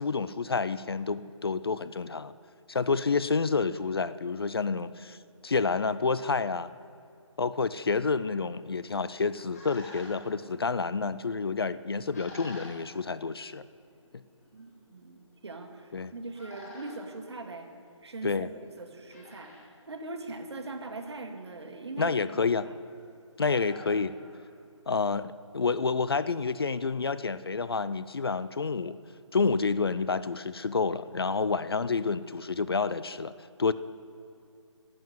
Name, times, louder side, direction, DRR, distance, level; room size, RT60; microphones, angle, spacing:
voice 1, 0.0-2.3 2.7-5.2 5.4-6.7 7.4-13.6 15.9-16.1 18.2-18.5 22.0-22.7 23.4-24.1 24.9-29.0 29.3-33.3 33.6-33.7, left 4 dB, 50° left, 15 dB, 0.4 m, -29 dB
sound 1, 9.4-25.1, left 2 dB, 30° left, 2.6 m, -53 dB
voice 2, 14.5-17.7 18.0-19.5 19.9-22.2 22.6-22.7, right 3 dB, 55° right, 6 dB, 1.5 m, -41 dB
11.5 x 7.3 x 9.1 m, 2.5 s
hypercardioid pair, 175°, 16 cm